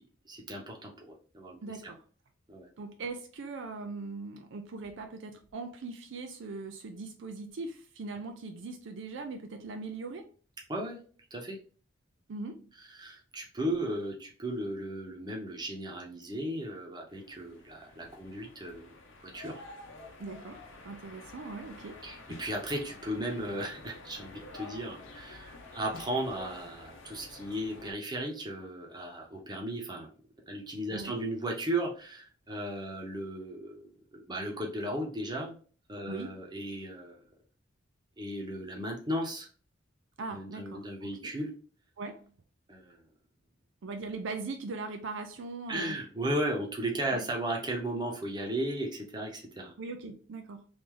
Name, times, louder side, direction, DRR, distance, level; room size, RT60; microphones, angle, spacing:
voice 1, 0.2-1.6 2.5-2.7 10.7-11.0 11.3-11.6 13.0-18.9 19.2-19.6 22.0-30.1 30.5-35.5 35.9-37.2 38.2-39.5 40.3-41.5 42.7-43.0 45.7-49.7, right 1 dB, 20° right, 0.9 m, -35 dB
voice 2, 1.6-2.0 2.8-10.3 12.3-12.7 20.2-22.0 30.9-31.2 36.1-36.4 40.2-41.3 42.0-42.3 43.8-46.0 47.1-47.3 49.8-50.7, right 3 dB, 65° right, 0.4 m, -40 dB
sound 1, 17.1-27.9, left 2 dB, 75° left, 0.7 m, -49 dB
3.1 x 2.6 x 3.7 m
head